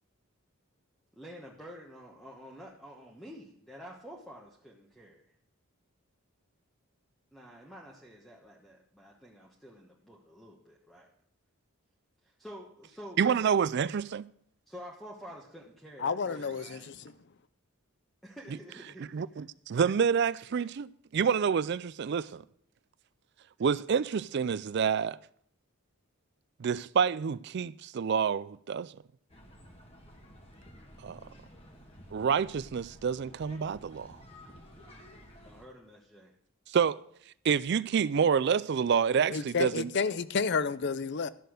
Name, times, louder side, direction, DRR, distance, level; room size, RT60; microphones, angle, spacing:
voice 1, 1.2-5.3 7.3-11.1 12.2-13.2 14.7-16.9 18.2-19.4 35.4-36.3, equal, ahead, 1.2 m, -49 dB
voice 2, 13.2-14.3 19.1-22.4 23.6-25.2 26.6-28.9 31.0-31.2 32.1-34.2 36.7-37.0 37.4-39.9, right 6 dB, 50° right, 0.3 m, -28 dB
voice 3, 16.0-17.1 39.3-41.3, left 5 dB, 50° left, 0.5 m, -31 dB
sound 1, 29.3-35.7, equal, 25° left, 1.6 m, -53 dB
12.5 x 6.7 x 6.4 m
head